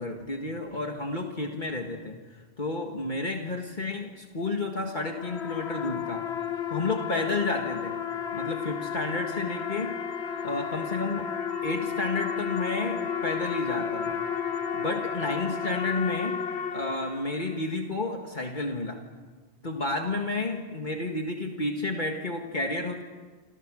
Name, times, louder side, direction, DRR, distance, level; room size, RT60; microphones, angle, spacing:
voice 1, 0.0-6.3 6.7-8.0 8.3-10.0 10.4-11.3 11.6-16.4 16.7-19.0 19.6-23.0, left 2 dB, 50° left, 2 dB, 1.9 m, -31 dB
sound 1, 4.9-17.6, left 7 dB, 85° left, 1.4 m, -32 dB
29.0 x 26.5 x 6.3 m, 1.4 s
omnidirectional pair, 1.1 m